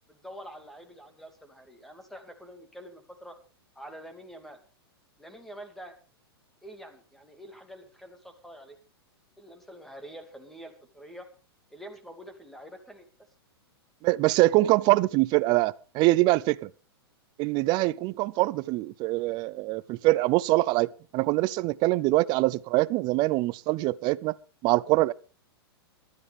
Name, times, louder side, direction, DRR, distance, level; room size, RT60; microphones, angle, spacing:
voice 1, 0.1-3.4 3.8-4.6 5.2-5.9 6.6-8.8 9.4-11.3 11.7-13.1, equal, ahead, 2.4 m, -46 dB
voice 2, 14.0-16.7 17.4-24.4 24.6-25.1, right 19 dB, 35° right, 0.6 m, -24 dB
18.5 x 12.5 x 3.5 m
hypercardioid pair, 135°, 13 cm